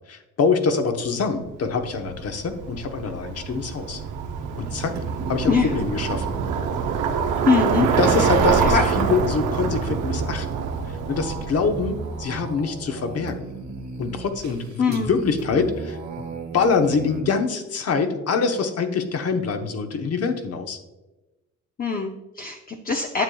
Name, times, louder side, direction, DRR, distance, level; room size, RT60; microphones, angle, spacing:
voice 1, 0.1-4.0 4.6-4.9 5.3-6.3 7.8-10.7 11.1-13.5 14.0-16.2 16.5-20.8, left 5 dB, 55° left, 6 dB, 0.9 m, -25 dB
Bicycle, 1.7-12.6, right 6 dB, 85° right, 0.7 m, -25 dB
sound 1, 4.0-17.2, right 4 dB, 65° right, 1.2 m, -37 dB
voice 2, 7.5-7.9 8.6-8.8 14.8-15.2 21.8-23.2, left 5 dB, 30° left, 3 dB, 0.6 m, -22 dB
9.4 x 6.7 x 2.3 m, 1.0 s
cardioid pair, 90°, 30 cm